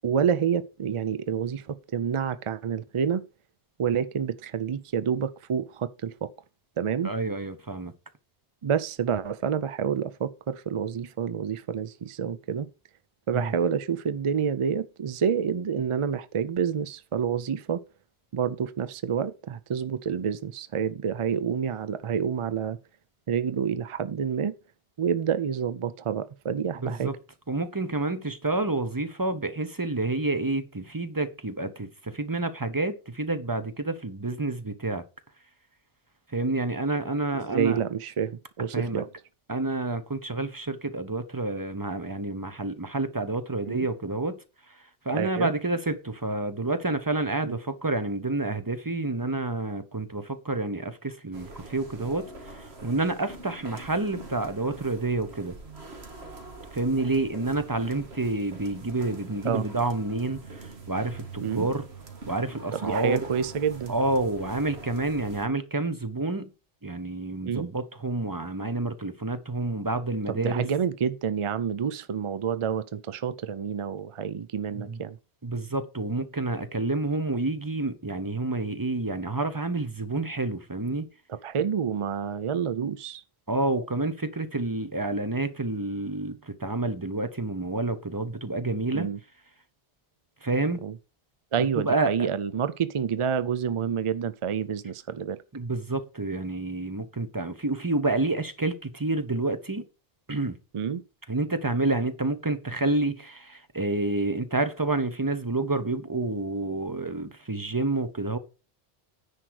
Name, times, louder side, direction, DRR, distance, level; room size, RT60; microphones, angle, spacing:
voice 1, 0.0-3.2 3.8-6.3 6.8-7.1 8.6-12.7 13.3-17.8 18.3-22.8 23.3-24.5 25.0-27.1 37.3-39.1 43.7-43.9 45.1-45.5 47.4-47.6 59.4-59.6 61.4-61.7 62.7-63.9 67.4-67.7 70.3-75.2 81.3-83.2 88.9-89.2 90.8-90.9 91.5-95.4 100.7-101.0, right 7 dB, 50° right, 0.3 m, -28 dB
voice 2, 7.0-7.9 13.3-13.5 26.8-27.1 27.5-35.0 36.3-37.8 38.7-39.0 39.5-44.4 44.7-44.8 45.0-55.6 56.7-61.8 62.3-63.2 63.9-66.5 66.8-70.6 74.7-75.0 75.4-81.1 83.5-89.1 90.4-90.8 91.8-92.3 95.5-99.8 100.3-100.6 101.3-108.4, right 2 dB, 20° right, 0.8 m, -29 dB
sound 1, 51.3-65.5, right 3 dB, 70° right, 1.8 m, -44 dB
9.9 x 4.6 x 6.3 m
omnidirectional pair, 1.1 m